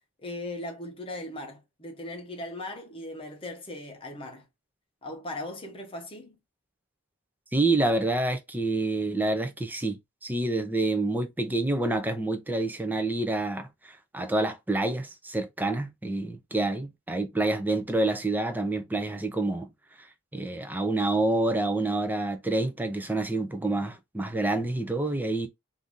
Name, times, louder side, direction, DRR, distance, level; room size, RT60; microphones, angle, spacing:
voice 1, 0.2-4.5 5.0-6.4, left 1 dB, 25° left, 0.8 m, -38 dB
voice 2, 7.5-19.7 20.0-20.1 20.3-25.5, right 2 dB, 10° right, 0.4 m, -28 dB
2.6 x 2.5 x 3.5 m
head